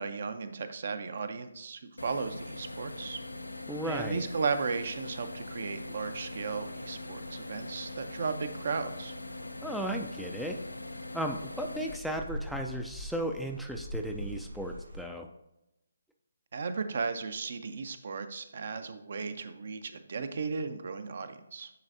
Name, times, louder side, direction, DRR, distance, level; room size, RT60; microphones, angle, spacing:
voice 1, 0.0-3.2 3.8-9.1 16.5-21.7, right 5 dB, 50° right, 10 dB, 0.5 m, -35 dB
sound 1, 2.0-12.0, left 2 dB, 80° left, 0.4 m, -42 dB
voice 2, 3.7-4.3 9.6-10.6 11.1-15.3, right 1 dB, ahead, 2 dB, 0.3 m, -35 dB
Rain, 5.9-15.0, equal, 75° right, 1.6 m, -45 dB
9.5 x 4.0 x 2.6 m, 0.90 s
figure-of-eight pair, 145°, 0 cm